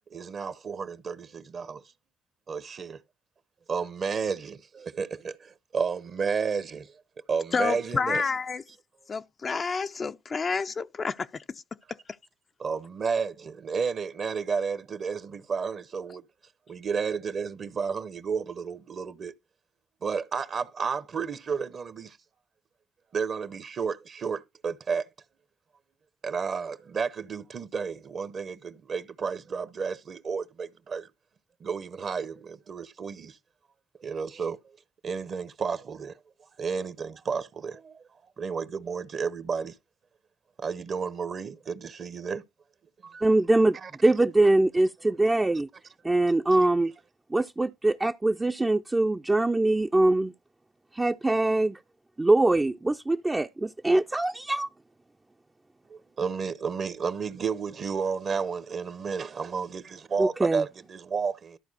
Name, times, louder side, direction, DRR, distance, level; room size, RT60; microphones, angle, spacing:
voice 1, 0.1-1.8 2.5-3.0 3.7-6.9 7.3-8.2 12.6-16.2 16.7-19.3 20.0-22.2 23.1-25.1 26.2-31.1 31.6-33.4 34.0-34.6 35.0-36.1 36.6-37.9 38.4-39.7 40.6-42.4 43.0-43.2 43.8-43.9 55.9-61.6, right 5 dB, 55° right, 0.9 m, -32 dB
voice 2, 7.5-8.6 9.1-11.6, left 5 dB, 45° left, 0.4 m, -29 dB
voice 3, 43.2-43.8 44.0-45.7 46.0-46.9 47.3-50.3 50.9-51.8 52.2-54.7 60.2-60.6, right 2 dB, 20° right, 0.5 m, -23 dB
13.0 x 4.5 x 4.1 m
hypercardioid pair, 50°, 0 cm